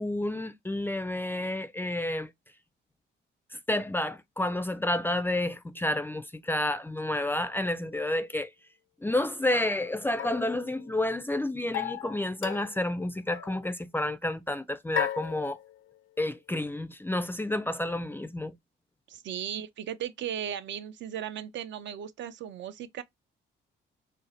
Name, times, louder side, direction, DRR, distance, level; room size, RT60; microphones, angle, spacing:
voice 1, 0.0-2.3 3.7-8.5 9.0-15.6 16.2-18.5, left 1 dB, 10° left, 0.3 m, -30 dB
sound 1, 7.2-7.3 9.5-11.2 11.7-12.9 13.3-13.7 15.0-16.0, left 12 dB, 85° left, 0.5 m, -37 dB
voice 2, 19.1-23.0, right 9 dB, 65° right, 0.5 m, -36 dB
2.7 x 2.0 x 3.9 m
cardioid pair, 90°, 20 cm